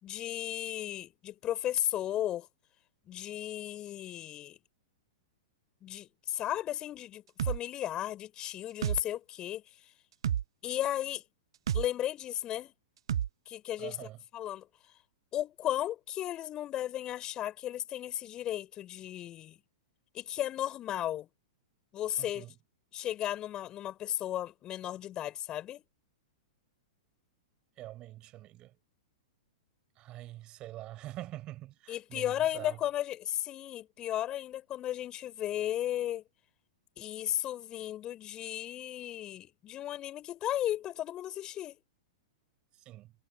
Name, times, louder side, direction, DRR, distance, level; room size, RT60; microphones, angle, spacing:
voice 1, 0.0-2.5 3.1-4.6 5.8-9.6 10.6-11.2 11.7-12.7 13.5-14.0 14.3-14.7 15.3-19.6 20.1-21.3 21.9-22.5 22.9-25.8 31.9-36.2 37.0-41.8, left 12 dB, 25° left, 4.3 m, -35 dB
sound 1, 7.4-7.6 8.8-9.0 10.2-10.4 11.7-11.9 13.1-13.3, right 10 dB, 60° right, 0.9 m, -29 dB
voice 2, 13.8-14.2 22.2-22.5 27.8-28.7 30.0-32.8 42.8-43.1, right 15 dB, 30° right, 4.7 m, -45 dB
figure-of-eight pair, 105°, 3 cm